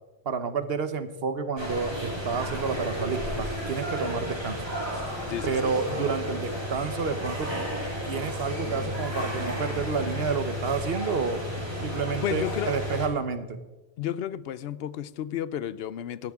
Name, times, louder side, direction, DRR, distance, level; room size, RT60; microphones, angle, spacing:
voice 1, 0.2-4.6 5.4-7.5 8.0-11.4 11.8-13.6, right 5 dB, 70° right, 10 dB, 1.2 m, -30 dB
sound 1, 1.6-13.1, equal, 25° right, 3.2 m, -32 dB
voice 2, 5.3-5.7 12.2-12.7 14.0-16.3, left 10 dB, 75° left, 17 dB, 0.8 m, -32 dB
17.0 x 11.5 x 3.6 m, 1.1 s
omnidirectional pair, 1.1 m